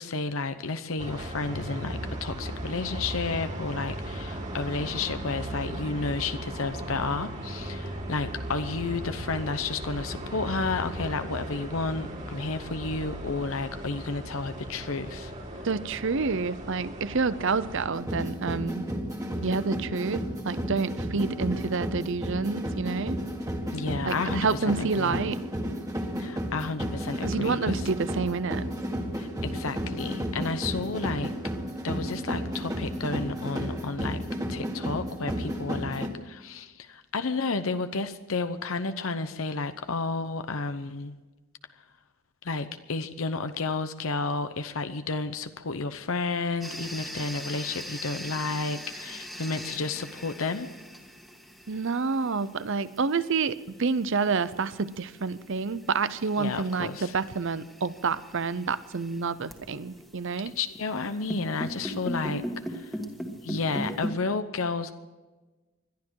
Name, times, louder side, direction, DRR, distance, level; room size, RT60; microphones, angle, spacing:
voice 1, 0.0-15.3 23.7-25.2 26.2-27.9 29.2-31.3 31.8-34.2 34.5-41.1 42.4-50.7 56.4-57.1 60.6-63.0 63.4-65.0, left 3 dB, 70° left, 10 dB, 0.8 m, -31 dB
sound 1, 1.0-17.9, right 1 dB, 35° right, 2.4 m, -37 dB
voice 2, 15.6-18.9 19.4-23.2 24.0-25.4 27.2-28.6 51.7-60.5, right 4 dB, 60° right, 16 dB, 0.7 m, -28 dB
sound 2, 17.9-36.1, equal, 15° right, 1.8 m, -33 dB
sound 3, 46.6-64.1, equal, ahead, 1.6 m, -40 dB
21.0 x 12.0 x 4.7 m, 1.2 s
head